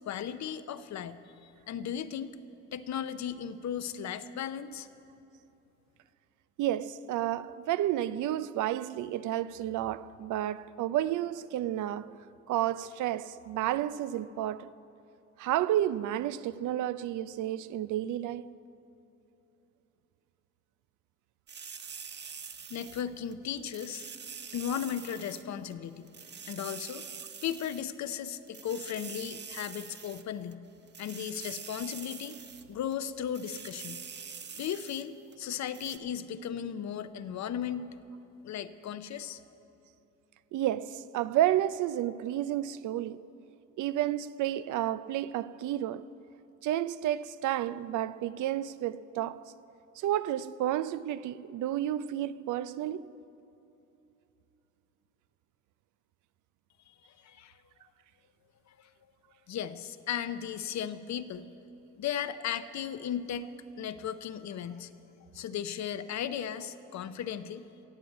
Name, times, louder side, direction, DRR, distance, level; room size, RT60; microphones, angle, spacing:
voice 1, 0.1-2.3 2.7-4.9 22.7-24.1 24.5-26.1 26.5-27.0 27.4-30.7 31.0-32.4 32.7-34.0 34.6-37.9 38.4-39.4 57.0-57.6 58.7-58.9 59.5-61.5 62.0-63.5 63.8-64.9 65.3-67.6, left 9 dB, 65° left, 0.7 m, -36 dB
voice 2, 6.6-12.1 12.5-14.7 15.4-18.5 40.5-43.2 43.8-46.1 46.6-49.4 50.0-53.1, right 12 dB, 80° right, 0.5 m, -31 dB
sound 1, 21.5-23.3 23.7-25.4 25.7-25.8 26.1-27.8 28.1-28.2 28.5-30.5 30.9-32.6 32.9-33.0 33.3-35.0 35.3-35.4 35.7-36.0, right 6 dB, 35° right, 0.7 m, -45 dB
16.5 x 7.8 x 8.0 m
cardioid pair, 90°, 30 cm